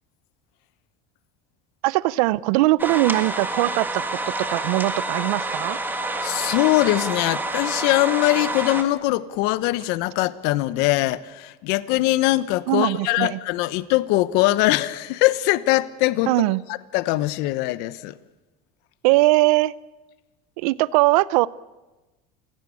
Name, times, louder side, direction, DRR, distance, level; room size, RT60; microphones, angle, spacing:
voice 1, 1.8-4.0 4.5-5.8 12.7-13.4 16.3-16.6 19.0-19.7 20.6-21.5, right 19 dB, 85° right, 20 dB, 0.7 m, -20 dB
sound 1, 2.8-8.8, right 2 dB, 10° right, 1.6 m, -28 dB
voice 2, 6.2-16.3 16.9-18.2, left 17 dB, 65° left, 16 dB, 1.0 m, -22 dB
29.5 x 16.5 x 8.5 m, 1.1 s
cardioid pair, 145°, 18 cm